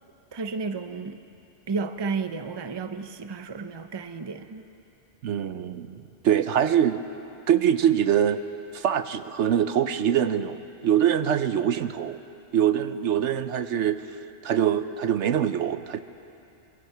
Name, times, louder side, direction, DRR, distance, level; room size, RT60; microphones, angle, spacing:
voice 1, 0.3-1.2 1.7-4.6, right 4 dB, 25° right, 9 dB, 0.6 m, -32 dB
voice 2, 5.2-7.1 7.5-8.4 8.7-12.2 12.5-14.1 14.4-16.0, right 9 dB, 75° right, 11 dB, 1.0 m, -24 dB
25.0 x 22.5 x 5.9 m, 2.8 s
omnidirectional pair, 1.2 m